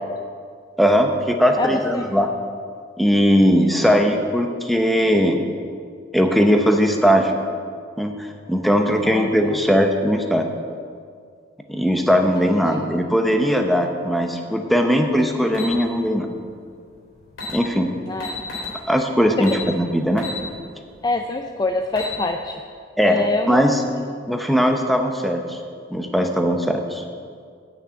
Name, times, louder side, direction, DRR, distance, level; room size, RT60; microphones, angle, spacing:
voice 1, 0.8-2.3 3.0-5.4 6.1-7.4 8.0-10.5 11.7-16.3 17.5-17.9 18.9-20.2 23.0-23.8 24.3-25.6 25.9-27.0, equal, ahead, 4 dB, 0.8 m, -19 dB
voice 2, 1.6-2.1 3.8-4.0 9.1-9.6 18.1-18.3 19.4-19.5 21.0-22.6 23.0-24.0, left 2 dB, 20° left, 5 dB, 0.4 m, -25 dB
sound 1, 15.5-15.7 16.9-17.0 17.3-17.5 18.2-18.7 19.4-19.6 20.2-20.4 20.8-20.9 21.7-22.2, left 4 dB, 85° left, 3.3 m, -31 dB
8.7 x 6.6 x 8.2 m, 2.1 s
head